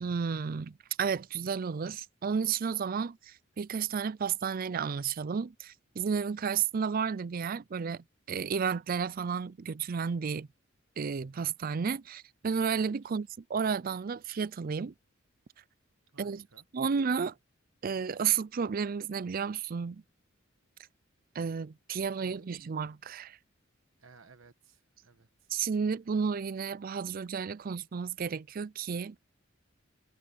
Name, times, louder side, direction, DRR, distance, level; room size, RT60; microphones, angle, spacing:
voice 1, 0.0-10.5 11.0-14.9 16.2-16.5 16.7-17.3 17.8-20.0 21.3-23.4 25.5-29.2, right 6 dB, 45° right, 0.4 m, -32 dB
voice 2, 16.1-16.6 22.2-22.5 24.0-25.5, right 4 dB, 85° right, 1.3 m, -58 dB
head